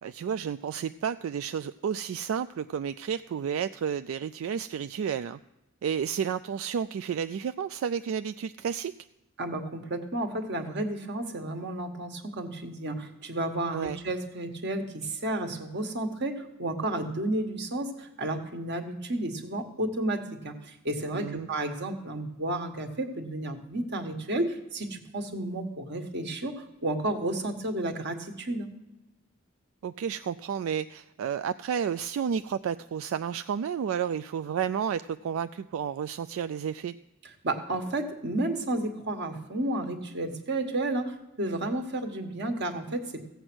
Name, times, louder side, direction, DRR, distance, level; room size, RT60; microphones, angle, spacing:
voice 1, 0.0-5.4 5.8-8.9 13.7-14.0 21.1-21.5 29.8-36.9, right 7 dB, 85° right, 12 dB, 0.3 m, -31 dB
voice 2, 9.4-28.7 37.4-43.2, right 1 dB, 60° right, 5 dB, 1.4 m, -32 dB
15.0 x 8.0 x 6.1 m, 0.95 s
head